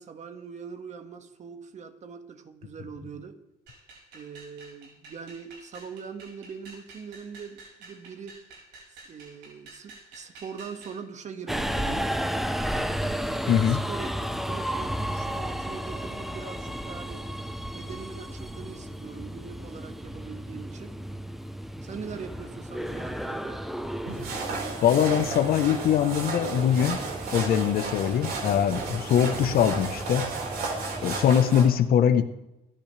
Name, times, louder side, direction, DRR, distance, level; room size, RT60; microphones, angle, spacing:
voice 1, 0.0-3.3 4.1-8.4 9.1-12.1 13.3-17.3 17.7-21.0 21.8-23.7, right 6 dB, 45° right, 7 dB, 2.0 m, -42 dB
sound 1, 3.7-11.0, right 3 dB, 80° right, 6.1 m, -50 dB
Subway metro underground, 11.5-31.4, equal, ahead, 0.9 m, -34 dB
voice 2, 13.5-13.8 24.8-27.0 27.3-30.3 31.0-32.4, left 9 dB, 60° left, 9 dB, 1.2 m, -22 dB
sound 2, 24.1-31.7, right 4 dB, 65° right, 5.2 m, -33 dB
28.0 x 10.5 x 3.5 m, 0.94 s
cardioid pair, 110°, 17 cm